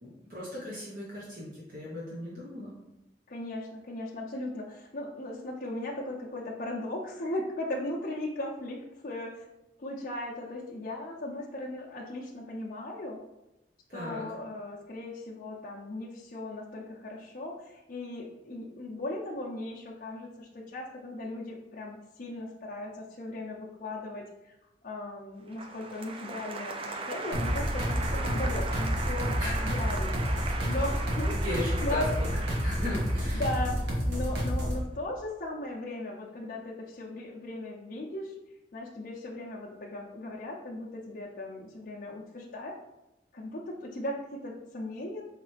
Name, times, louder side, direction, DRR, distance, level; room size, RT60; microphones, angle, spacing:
voice 1, 0.0-2.7 13.9-14.2 29.4-29.7 30.6-30.8 31.2-33.4, left 1 dB, 50° right, -6 dB, 0.9 m, -37 dB
voice 2, 3.3-9.5 9.8-13.2 13.9-24.5 24.8-29.3 29.6-31.3 31.8-32.1 33.3-38.3 38.7-42.8 43.3-45.2, left 1 dB, 50° left, -5 dB, 0.5 m, -37 dB
Applause, 25.5-34.6, right 3 dB, 30° right, 0.4 m, -38 dB
sound 1, 27.3-34.8, equal, 75° right, 1.0 m, -29 dB
3.9 x 3.2 x 3.2 m, 0.92 s
head